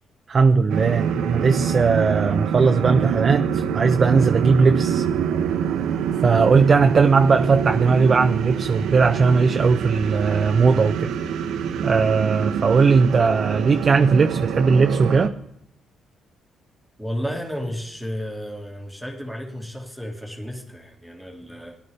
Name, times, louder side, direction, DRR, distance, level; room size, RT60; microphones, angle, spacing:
voice 1, 0.3-5.0 6.2-11.1 11.8-15.3, right 4 dB, 40° right, 0.5 m, -18 dB
sound 1, 0.7-15.3, right 8 dB, 85° right, 0.9 m, -25 dB
voice 2, 17.0-21.8, equal, ahead, 2.0 m, -32 dB
17.5 x 11.5 x 3.5 m
cardioid pair, 90°, 0 cm